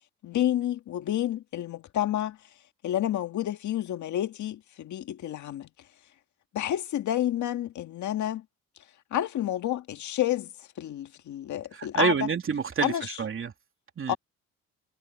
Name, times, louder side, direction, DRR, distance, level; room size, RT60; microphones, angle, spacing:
voice 1, 0.2-2.4 2.8-5.7 6.5-8.4 9.1-12.2 12.8-13.1 14.1-14.2, left 12 dB, 70° left, 1.8 m, -29 dB
voice 2, 11.7-13.5 14.0-14.2, right 6 dB, 45° right, 3.0 m, -28 dB
cardioid pair, 90°, 30 cm